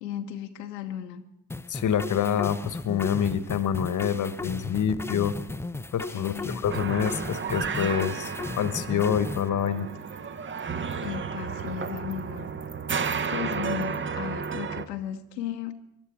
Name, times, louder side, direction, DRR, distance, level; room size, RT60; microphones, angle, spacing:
voice 1, 0.0-1.2 6.1-6.6 11.0-12.5 13.3-15.7, left 10 dB, 75° left, 6 dB, 0.9 m, -35 dB
sound 1, 1.5-9.5, left 2 dB, 5° left, 0.5 m, -36 dB
voice 2, 1.7-5.3 5.9-6.3 6.6-9.9, left 8 dB, 35° left, 13 dB, 1.2 m, -26 dB
sound 2, 6.7-14.9, right 6 dB, 25° right, 0.9 m, -32 dB
23.5 x 12.0 x 4.6 m, 0.83 s
figure-of-eight pair, 50°, 49 cm